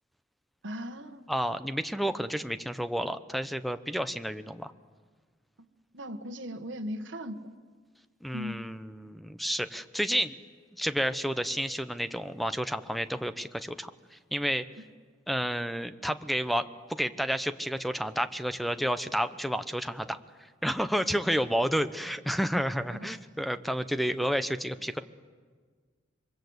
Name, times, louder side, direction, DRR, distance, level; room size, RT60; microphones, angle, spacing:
voice 1, 0.6-1.2 5.6-5.7 5.9-7.5 8.3-8.6 22.9-23.2, equal, 70° right, 5 dB, 1.5 m, -38 dB
voice 2, 1.3-4.7 8.2-10.3 10.8-14.7 15.3-20.2 20.6-25.0, equal, ahead, 11 dB, 0.8 m, -30 dB
27.5 x 24.0 x 8.0 m, 1.5 s
head